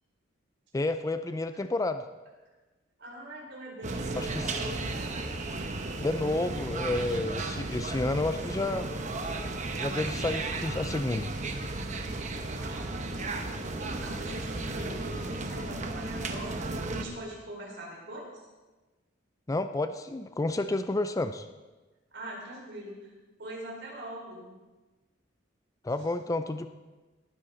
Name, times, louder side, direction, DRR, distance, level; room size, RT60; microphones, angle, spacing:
voice 1, 0.7-2.0 4.2-4.4 6.0-8.9 9.7-11.3 19.5-21.5 25.8-26.7, left 2 dB, 15° left, 10 dB, 0.4 m, -30 dB
voice 2, 3.0-5.1 12.5-18.4 22.1-23.1 23.4-24.5, right 1 dB, 60° right, -3 dB, 4.8 m, -42 dB
sound 1, 3.8-17.0, right 2 dB, 40° right, 0.9 m, -34 dB
19.0 x 10.0 x 3.9 m, 1.2 s
head